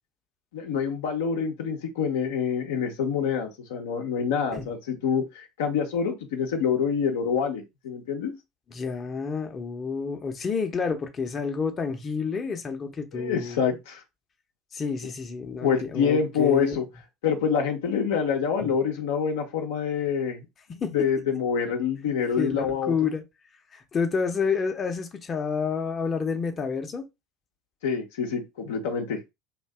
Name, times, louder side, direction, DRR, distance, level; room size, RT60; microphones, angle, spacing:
voice 1, 0.5-8.3 13.1-14.0 15.6-16.9 17.2-20.5 20.9-23.1 27.8-29.2, left 7 dB, 75° left, 0.6 m, -26 dB
voice 2, 8.7-13.6 14.7-16.8 18.6-18.7 20.8-21.0 22.4-23.2 23.7-27.0, left 5 dB, 35° left, 0.6 m, -29 dB
2.6 x 2.2 x 3.3 m
hypercardioid pair, 70°, 0 cm